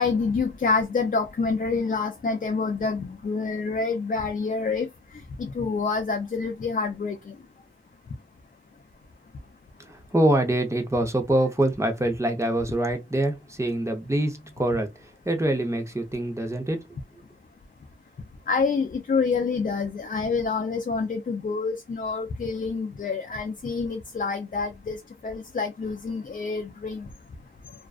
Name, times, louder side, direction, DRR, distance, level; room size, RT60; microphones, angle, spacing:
voice 1, 0.0-4.9 5.4-7.2 18.5-25.0 25.2-27.1, left 4 dB, 40° left, 0.4 m, -27 dB
voice 2, 9.9-16.9, right 1 dB, 15° right, 0.7 m, -25 dB
2.4 x 2.2 x 2.3 m
wide cardioid pair, 75°, 21 cm